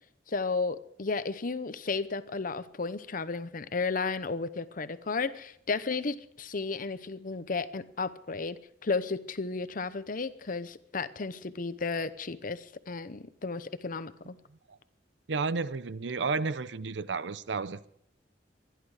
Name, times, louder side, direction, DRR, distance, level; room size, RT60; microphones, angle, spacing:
voice 1, 0.3-14.4, left 4 dB, 50° left, 0.8 m, -33 dB
voice 2, 15.3-17.9, right 4 dB, 75° right, 0.6 m, -32 dB
24.0 x 11.0 x 4.9 m
head